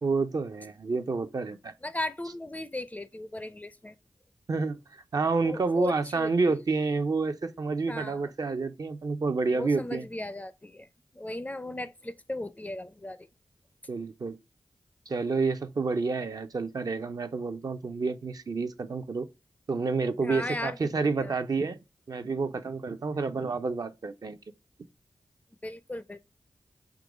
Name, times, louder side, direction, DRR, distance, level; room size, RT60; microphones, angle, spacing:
voice 1, 0.0-1.7 4.5-4.8 5.1-10.0 13.9-14.4 15.1-19.3 19.7-21.8 22.1-24.4, right 4 dB, 55° right, 0.5 m, -29 dB
voice 2, 1.8-3.9 5.4-6.5 7.9-8.3 9.5-10.9 11.1-13.3 20.2-21.4 25.6-26.2, left 1 dB, 20° left, 0.4 m, -37 dB
3.7 x 3.0 x 4.8 m
cardioid pair, 40°, 8 cm